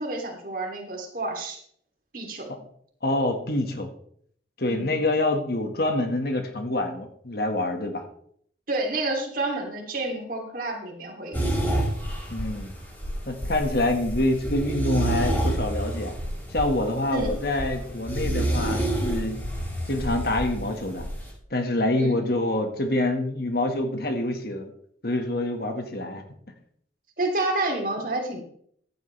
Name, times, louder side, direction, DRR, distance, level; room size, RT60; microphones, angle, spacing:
voice 1, 0.0-1.6 2.1-2.5 4.7-5.0 8.7-11.4 17.1-17.3 22.0-22.2 27.2-28.4, right 2 dB, 50° right, 1 dB, 3.1 m, -29 dB
voice 2, 3.0-3.9 4.6-8.0 12.3-12.7 13.3-16.1 16.5-19.4 19.9-21.0 21.5-24.7 25.0-26.2, left 1 dB, 55° left, 4 dB, 1.8 m, -26 dB
sound 1, 11.3-21.3, right 1 dB, 10° left, 6.0 m, -29 dB
15.5 x 10.5 x 3.4 m, 0.64 s
head